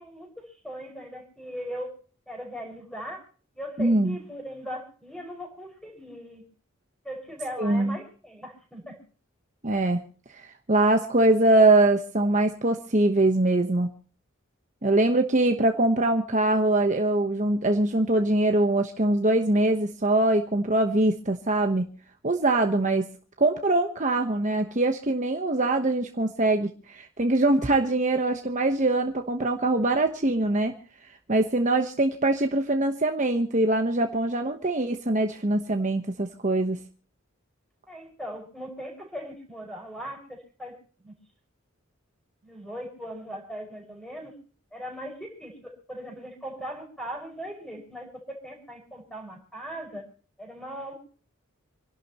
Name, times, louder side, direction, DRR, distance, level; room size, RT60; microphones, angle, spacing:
voice 1, 0.0-1.9 2.3-3.2 3.5-6.4 7.0-9.0 37.9-40.8 41.0-41.1 42.4-44.4 44.7-50.1 50.4-50.9, equal, 5° left, 2 dB, 5.7 m, -39 dB
voice 2, 3.8-4.2 7.6-8.0 9.6-10.0 10.3-13.9 14.8-21.9 22.2-23.1 23.4-30.8 31.3-36.8, right 2 dB, 35° right, 5 dB, 1.1 m, -23 dB
28.0 x 11.5 x 3.0 m, 0.43 s
head